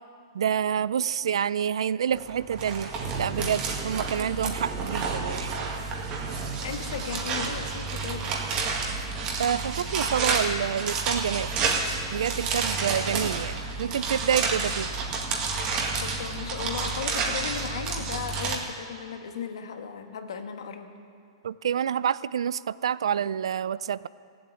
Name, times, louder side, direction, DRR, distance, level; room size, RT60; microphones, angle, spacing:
voice 1, 0.3-2.9 3.2-5.5 9.4-11.5 12.1-14.9 21.4-24.1, right 8 dB, 80° right, 19 dB, 0.4 m, -28 dB
sound 1, 2.1-18.6, right 4 dB, 30° right, 2.0 m, -30 dB
voice 2, 6.6-8.3 16.0-20.9, left 7 dB, 75° left, 6 dB, 1.4 m, -36 dB
16.0 x 8.0 x 8.9 m, 2.4 s
hypercardioid pair, 150°, 3 cm